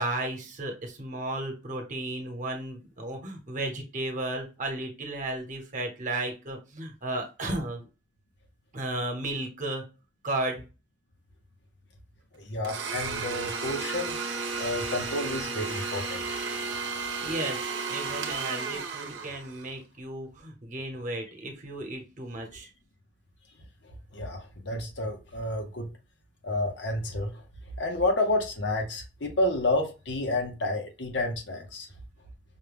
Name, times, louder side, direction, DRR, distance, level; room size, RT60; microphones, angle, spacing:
voice 1, 0.0-7.9 8.7-9.8 10.2-10.6 17.2-17.6 17.9-22.7, right 2 dB, 45° right, 1.0 m, -34 dB
voice 2, 12.4-14.2 14.6-16.4 24.1-25.9 26.4-27.4 27.8-31.9, left 2 dB, 75° left, 0.9 m, -30 dB
Domestic sounds home sounds, 12.6-19.7, right 4 dB, 90° right, 0.8 m, -33 dB
5.4 x 2.2 x 3.4 m
head